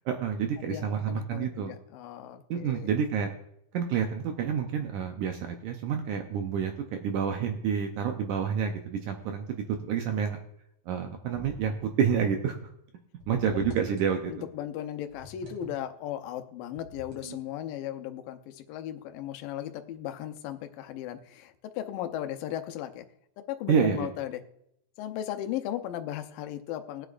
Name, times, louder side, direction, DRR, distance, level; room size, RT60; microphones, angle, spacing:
voice 1, 0.1-1.7 2.5-3.3 3.7-10.4 10.9-12.7 13.3-14.3 23.7-24.1, right 7 dB, 80° right, 4 dB, 1.7 m, -29 dB
voice 2, 0.6-2.9 13.3-13.6 14.3-23.0 23.5-24.4 25.0-27.1, left 11 dB, 75° left, 7 dB, 2.3 m, -36 dB
sound 1, 11.3-11.8 13.2-14.2 15.1-15.8 16.7-17.6, equal, 40° right, 3.3 m, -46 dB
20.5 x 8.2 x 2.5 m, 0.77 s
omnidirectional pair, 4.5 m